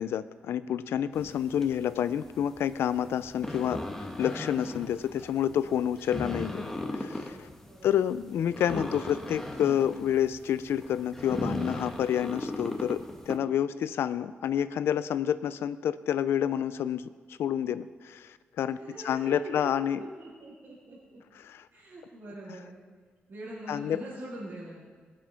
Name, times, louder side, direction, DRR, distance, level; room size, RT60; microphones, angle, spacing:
voice 1, 0.0-3.8 4.2-7.5 7.8-18.8 19.0-20.0 21.4-21.7 23.7-24.0, left 9 dB, 85° left, 14 dB, 0.4 m, -29 dB
sound 1, 1.1-13.4, left 1 dB, 10° left, 1.4 m, -38 dB
voice 2, 7.6-8.0 18.7-21.2 21.7-22.8 23.3-24.8, right 1 dB, 55° right, -9 dB, 3.6 m, -43 dB
17.5 x 7.5 x 5.7 m, 1.5 s
cardioid pair, 110°, 4 cm